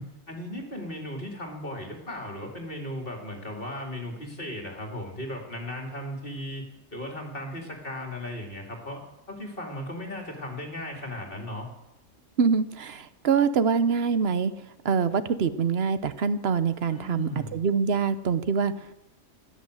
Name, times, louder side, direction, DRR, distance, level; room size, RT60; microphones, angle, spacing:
voice 1, 0.0-6.6 6.9-9.0 9.3-11.7 16.9-17.6, left 1 dB, 40° left, 2 dB, 2.5 m, -36 dB
voice 2, 12.4-14.5 14.8-18.7, right 6 dB, 50° right, 13 dB, 1.0 m, -24 dB
16.0 x 10.5 x 7.9 m, 0.94 s
omnidirectional pair, 1.5 m